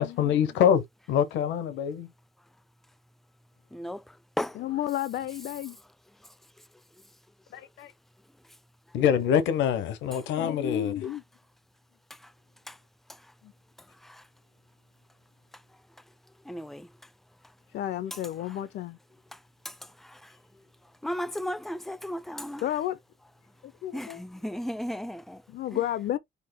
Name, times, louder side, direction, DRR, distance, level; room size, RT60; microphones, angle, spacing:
voice 1, 0.0-2.1 7.5-7.9 8.9-10.9, left 8 dB, 90° left, 0.9 m, -25 dB
voice 2, 3.7-4.0 4.4-4.6 12.7-12.8 16.5-16.9 21.0-22.6 23.9-25.4, equal, ahead, 0.4 m, -34 dB
voice 3, 4.5-5.8 10.4-11.2 13.4-13.5 17.7-19.0 22.6-23.0 23.6-24.2 25.5-26.2, left 12 dB, 70° left, 0.5 m, -32 dB
5.6 x 2.0 x 4.3 m
cardioid pair, 95°, 18 cm